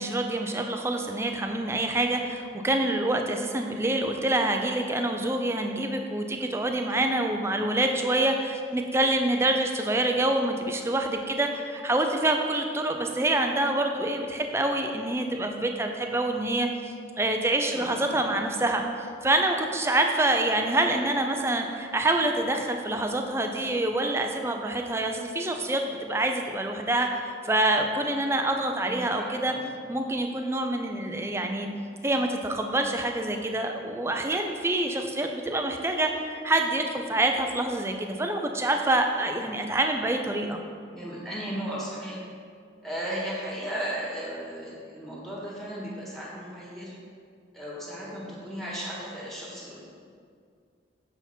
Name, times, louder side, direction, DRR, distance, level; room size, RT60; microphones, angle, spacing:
voice 1, 0.0-18.8 19.2-29.5 29.9-31.7 32.0-40.6, right 1 dB, 15° right, 4 dB, 0.5 m, -26 dB
voice 2, 17.7-18.2 28.9-29.6 40.9-42.2 42.8-46.9 47.5-49.8, equal, ahead, -6 dB, 1.8 m, -35 dB
8.0 x 5.7 x 4.4 m, 2.2 s
head